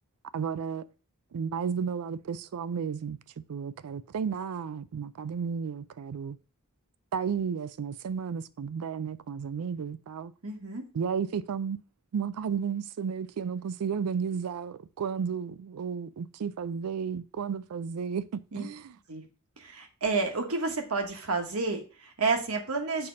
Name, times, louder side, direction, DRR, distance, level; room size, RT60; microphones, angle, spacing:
voice 1, 0.3-0.9 1.3-3.2 3.5-6.4 7.1-10.3 10.9-11.8 12.1-19.0, right 6 dB, 90° right, 0.4 m, -33 dB
voice 2, 10.4-10.8 18.5-18.6 19.1-19.2 19.6-23.1, right 4 dB, 70° right, 1.2 m, -30 dB
6.7 x 2.9 x 5.1 m
head